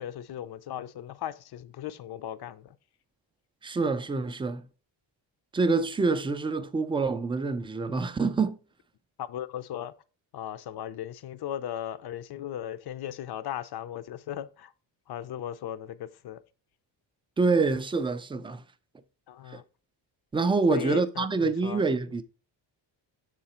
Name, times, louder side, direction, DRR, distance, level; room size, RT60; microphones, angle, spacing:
voice 1, 0.0-2.7 9.2-9.9 10.3-14.7 15.1-16.4 19.3-19.6 20.7-21.8, left 11 dB, 55° left, 0.6 m, -37 dB
voice 2, 3.6-4.6 5.5-8.6 17.4-18.6 19.5-19.6 20.3-22.2, right 4 dB, 15° right, 0.3 m, -26 dB
6.5 x 3.8 x 4.2 m
cardioid pair, 110°, 46 cm